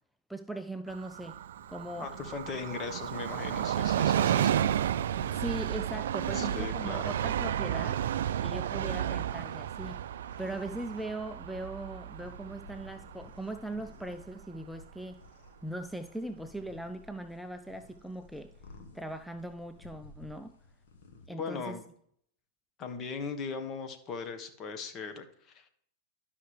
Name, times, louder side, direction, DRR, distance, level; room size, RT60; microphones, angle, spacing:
voice 1, 0.3-1.4 1.7-2.2 5.3-8.0 8.4-10.0 10.4-15.2 15.6-18.5 18.9-20.5 21.3-21.8, right 1 dB, ahead, 8 dB, 0.4 m, -39 dB
Train, 0.9-14.2 14.5-14.6, right 10 dB, 75° right, 0.3 m, -32 dB
sound 1, 1.6-21.3, left 3 dB, 65° left, 1.4 m, -54 dB
voice 2, 2.0-4.7 6.3-7.1 21.3-21.8 22.8-25.7, left 5 dB, 35° left, 8 dB, 1.3 m, -39 dB
12.0 x 5.6 x 3.3 m, 0.65 s
hypercardioid pair, 105°, 0 cm